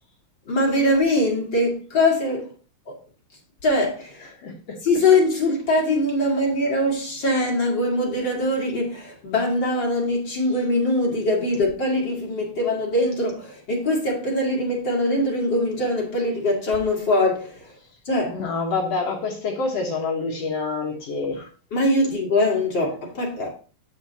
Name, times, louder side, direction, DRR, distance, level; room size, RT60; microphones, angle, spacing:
voice 1, 0.5-2.4 2.9-3.0 3.6-4.2 4.8-17.7 18.1-18.4 20.6-20.7 21.4-23.5, left 1 dB, 40° left, 2.3 m, -22 dB
voice 2, 4.4-4.8 11.6-11.7 18.3-21.4, left 4 dB, 60° left, 1.9 m, -27 dB
13.0 x 4.5 x 2.8 m
omnidirectional pair, 4.0 m